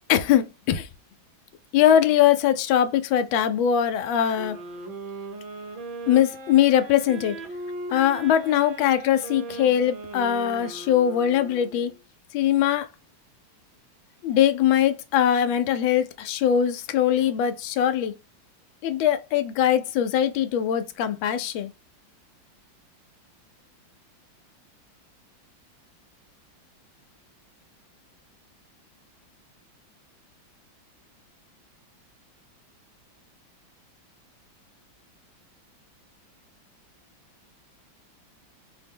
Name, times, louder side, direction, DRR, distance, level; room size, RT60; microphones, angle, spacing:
voice 1, 0.1-0.9 1.7-4.6 6.1-7.4 7.9-11.9 12.3-12.9 14.2-18.2 18.8-21.7, left 10 dB, 80° left, 1.4 m, -21 dB
sound 1, 4.3-12.0, right 3 dB, 80° right, 1.8 m, -38 dB
4.3 x 2.1 x 3.4 m
omnidirectional pair, 2.2 m